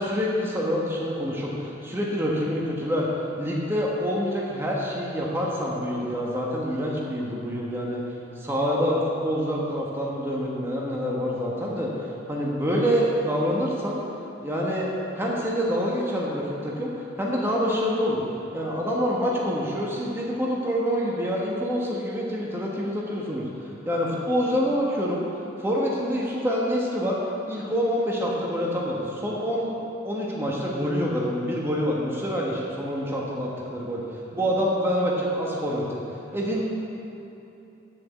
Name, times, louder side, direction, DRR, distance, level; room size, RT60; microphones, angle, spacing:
voice 1, 0.0-14.0 14.4-14.9 15.1-18.2 18.5-25.2 25.6-27.2 27.5-29.8 30.0-34.0 34.3-36.0 36.3-36.6, equal, 15° right, -4 dB, 1.3 m, -26 dB
8.8 x 7.0 x 8.1 m, 2.9 s
head